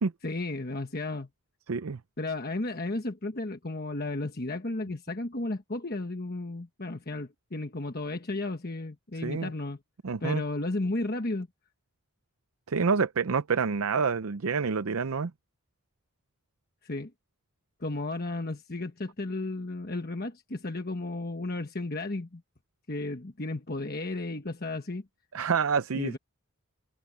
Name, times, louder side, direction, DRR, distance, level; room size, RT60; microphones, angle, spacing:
voice 1, 0.2-1.3 2.2-9.8 10.2-11.5 16.8-17.1 17.8-22.4 22.9-25.0 25.9-26.2, left 2 dB, 45° left, 1.2 m, -33 dB
voice 2, 1.7-2.0 9.2-9.5 10.0-10.4 12.7-15.3 25.3-26.2, right 5 dB, 70° right, 0.6 m, -27 dB
head